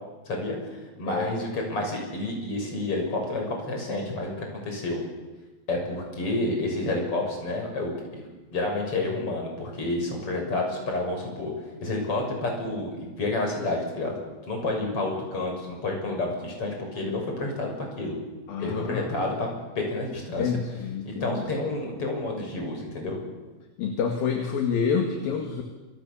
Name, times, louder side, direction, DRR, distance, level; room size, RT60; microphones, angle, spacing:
voice 1, 0.3-0.6 1.0-5.0 5.7-7.9 8.5-11.5 11.8-14.2 14.5-18.2 18.6-19.5 19.8-20.5 21.0-23.2, left 2 dB, 30° left, 1 dB, 7.5 m, -29 dB
voice 2, 1.0-1.4 18.5-19.4 20.4-21.5 23.8-25.6, left 6 dB, 60° left, 4 dB, 3.7 m, -28 dB
28.5 x 25.0 x 7.2 m, 1.2 s
omnidirectional pair, 4.9 m